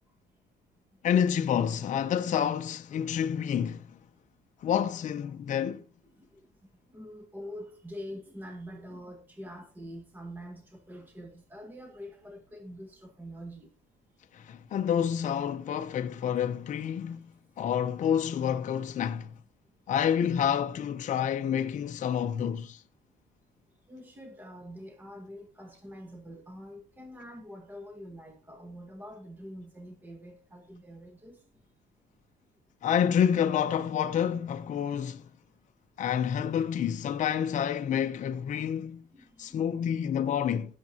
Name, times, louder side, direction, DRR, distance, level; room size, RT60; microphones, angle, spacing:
voice 1, 1.0-3.8 4.6-5.8 14.3-17.3 17.6-19.3 19.9-22.8 32.8-35.2 36.0-39.0 39.4-40.7, left 8 dB, 45° left, 0.6 m, -28 dB
voice 2, 6.0-6.5 6.9-13.7 17.1-17.2 23.9-31.5 38.5-38.7 39.1-39.8, equal, 10° right, 1.4 m, -45 dB
17.0 x 7.2 x 2.9 m
cardioid pair, 140°, 18 cm